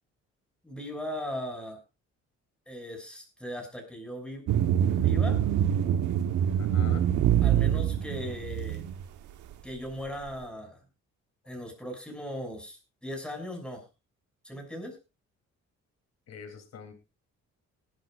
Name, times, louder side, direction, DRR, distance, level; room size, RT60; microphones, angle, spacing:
voice 1, 0.6-1.8 2.7-4.5 4.9-5.5 7.4-8.8 9.6-10.8 11.4-13.9 14.4-15.0, left 1 dB, 5° left, 2 dB, 6.2 m, -38 dB
sound 1, 4.5-9.0, right 10 dB, 75° right, 1.2 m, -25 dB
voice 2, 6.6-7.0 16.3-16.9, left 6 dB, 60° left, 7 dB, 3.0 m, -44 dB
19.5 x 12.0 x 2.5 m, 0.27 s
cardioid pair, 90°, 30 cm